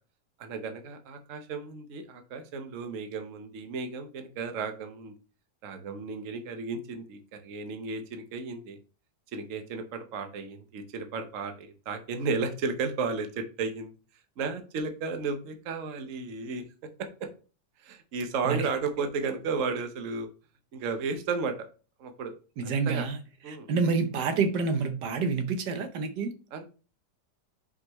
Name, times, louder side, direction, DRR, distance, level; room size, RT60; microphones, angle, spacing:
voice 1, 0.4-5.1 5.6-8.8 9.3-13.9 14.4-16.6 17.2-17.3 17.8-20.3 20.7-21.5 22.0-22.3 22.6-23.1 23.4-23.7 26.5-26.6, right 4 dB, 55° right, 1.2 m, -33 dB
voice 2, 22.6-23.2 23.5-26.3, right 4 dB, 80° right, 1.4 m, -28 dB
6.0 x 5.2 x 3.1 m
omnidirectional pair, 1.8 m